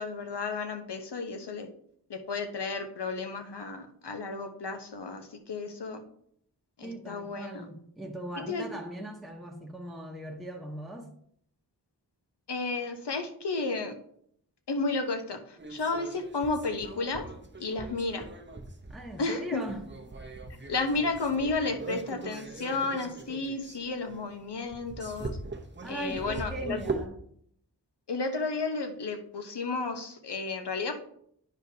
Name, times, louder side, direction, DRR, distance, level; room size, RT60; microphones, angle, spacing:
voice 1, 0.0-1.7 2.1-6.0 6.8-7.7 8.5-8.6 12.5-14.0 14.7-17.3 17.6-18.3 19.2-19.6 20.7-25.4 25.9-26.8 28.1-31.0, left 3 dB, 80° left, 6 dB, 0.9 m, -32 dB
voice 2, 6.8-11.1 18.9-19.8 25.8-27.1, right 1 dB, ahead, 0 dB, 0.9 m, -39 dB
sound 1, 15.6-27.1, right 2 dB, 30° right, 0.8 m, -41 dB
9.6 x 5.1 x 2.8 m, 0.68 s
wide cardioid pair, 55°, 40 cm